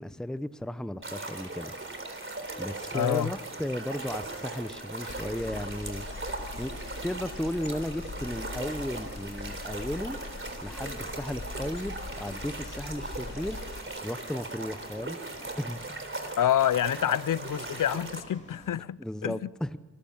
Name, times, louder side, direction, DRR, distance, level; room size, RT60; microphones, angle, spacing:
voice 1, 0.0-1.7 2.6-6.0 6.6-6.7 7.0-10.2 10.6-13.6 14.0-15.2 15.6-15.8 19.0-19.8, left 1 dB, ahead, 0.9 m, -35 dB
sound 1, 1.0-18.2, right 2 dB, 40° right, 3.7 m, -39 dB
sound 2, 1.3-18.8, left 1 dB, 20° left, 3.2 m, -52 dB
voice 2, 2.9-3.3 16.4-19.4, left 10 dB, 75° left, 0.6 m, -27 dB
sound 3, 5.0-13.8, left 4 dB, 55° left, 2.5 m, -42 dB
27.0 x 14.5 x 8.9 m
cardioid pair, 65°, 32 cm